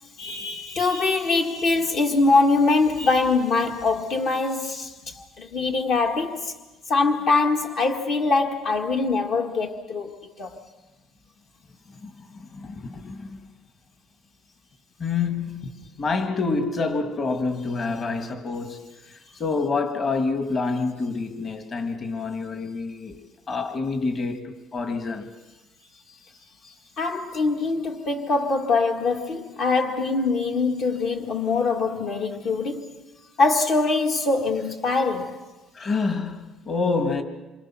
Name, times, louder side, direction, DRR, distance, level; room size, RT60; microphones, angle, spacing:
voice 1, 0.2-6.5 6.9-10.6 26.6-33.0 33.4-35.4, left 3 dB, 50° left, 1.8 m, -23 dB
voice 2, 11.9-13.4 15.0-23.2 23.5-25.3 35.7-37.2, left 4 dB, 30° left, 2.0 m, -28 dB
27.5 x 26.0 x 6.2 m
cardioid pair, 150°, 0 cm